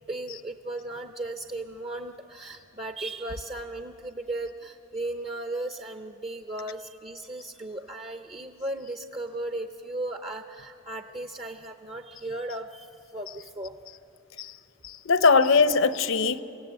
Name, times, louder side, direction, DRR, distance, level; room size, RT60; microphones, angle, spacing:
voice 1, 0.1-12.9 13.1-13.7, right 2 dB, 30° right, 6 dB, 0.7 m, -36 dB
voice 2, 14.8-16.4, left 4 dB, 70° left, 12 dB, 0.8 m, -21 dB
29.5 x 17.0 x 9.0 m, 2.9 s
head